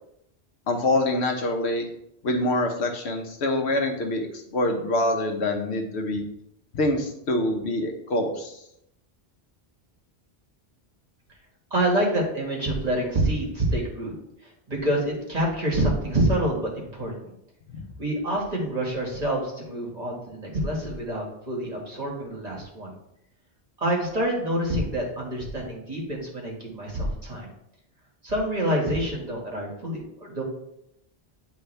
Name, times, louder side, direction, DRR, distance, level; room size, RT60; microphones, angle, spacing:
voice 1, 0.7-1.9 2.2-6.2 6.7-8.5 17.7-17.8, left 1 dB, 80° left, 3 dB, 1.2 m, -25 dB
voice 2, 11.7-14.1 14.7-17.3 18.0-22.9 23.8-27.5 28.2-30.4, right 1 dB, 40° right, -3 dB, 1.8 m, -27 dB
9.3 x 3.5 x 3.3 m, 0.78 s
omnidirectional pair, 1.1 m